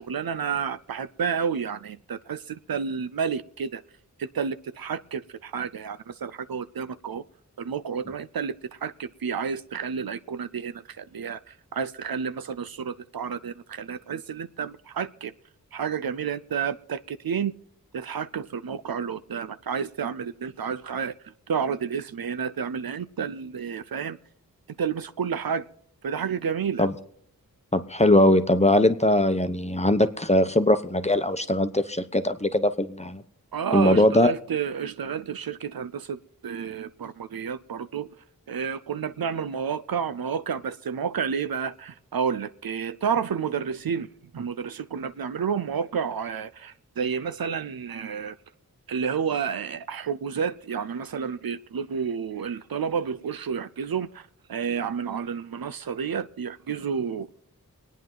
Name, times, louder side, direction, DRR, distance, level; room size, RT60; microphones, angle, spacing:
voice 1, 0.0-3.8 4.2-7.2 7.6-15.3 15.7-17.5 17.9-24.2 24.8-25.7 26.0-26.9 33.5-38.1 38.5-44.1 44.3-48.4 48.9-57.3, right 7 dB, 80° right, 0.6 m, -30 dB
voice 2, 27.7-33.2 33.7-34.3, left 1 dB, 20° left, 0.9 m, -21 dB
25.0 x 9.3 x 3.9 m
wide cardioid pair, 55°, 36 cm